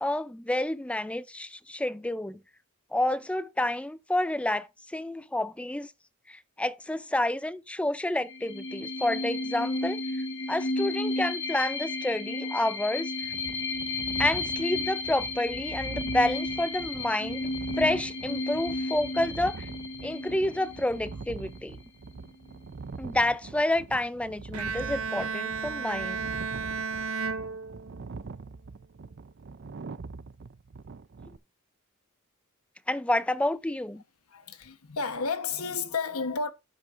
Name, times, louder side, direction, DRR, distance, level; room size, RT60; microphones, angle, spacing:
voice 1, 0.0-2.4 2.9-5.9 6.3-13.3 14.2-17.5 17.8-19.7 20.0-21.8 23.0-26.3 32.9-34.0, left 1 dB, 5° left, 0.4 m, -29 dB
sound 1, 8.2-21.6, left 2 dB, 60° left, 1.8 m, -33 dB
sound 2, 13.2-31.4, right 4 dB, 50° right, 0.5 m, -43 dB
Bowed string instrument, 24.5-28.3, right 5 dB, 75° right, 0.9 m, -33 dB
voice 2, 34.3-36.5, left 4 dB, 80° left, 1.1 m, -31 dB
11.0 x 9.0 x 2.6 m
head